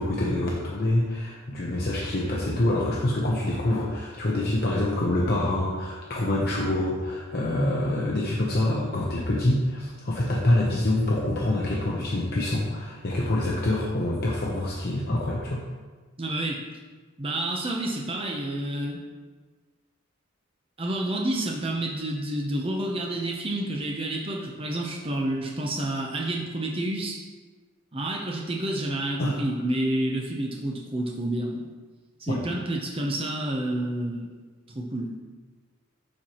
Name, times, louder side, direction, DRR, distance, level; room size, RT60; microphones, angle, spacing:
voice 1, 0.0-15.6 29.2-29.4 32.3-32.4, left 1 dB, 45° left, -3 dB, 0.8 m, -26 dB
voice 2, 16.2-16.6 17.2-19.0 20.8-27.2 27.9-31.6 32.2-34.3 34.7-35.1, right 1 dB, 25° right, -1 dB, 0.7 m, -29 dB
12.0 x 4.6 x 3.0 m, 1.4 s
head